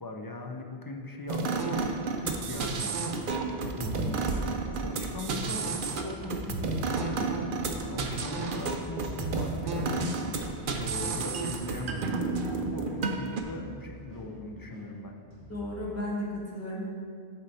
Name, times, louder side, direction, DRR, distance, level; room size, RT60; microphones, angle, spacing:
voice 1, 0.0-3.0 3.6-5.7 6.0-7.5 7.8-10.5 10.7-15.2, left 2 dB, 35° left, 1 dB, 0.3 m, -40 dB
sound 1, 1.3-13.4, right 3 dB, 60° right, 0.7 m, -31 dB
sound 2, 3.9-15.8, equal, 85° left, 2.2 m, -49 dB
voice 2, 15.5-16.8, left 1 dB, 15° left, -5 dB, 1.4 m, -35 dB
8.3 x 4.4 x 4.1 m, 2.2 s
omnidirectional pair, 1.1 m